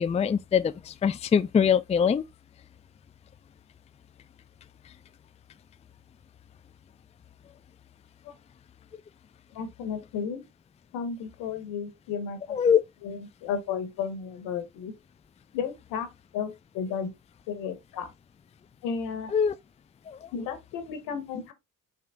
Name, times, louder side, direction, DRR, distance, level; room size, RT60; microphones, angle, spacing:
voice 1, 0.0-2.2 12.5-12.8 19.3-19.5 20.1-20.3, left 7 dB, 20° left, 0.4 m, -23 dB
voice 2, 9.5-10.4 10.9-12.6 13.0-14.9 15.5-17.1 17.5-18.1 18.8-19.3 20.3-21.5, left 6 dB, 80° left, 1.4 m, -33 dB
5.6 x 3.7 x 2.4 m
supercardioid pair, 65°, 33 cm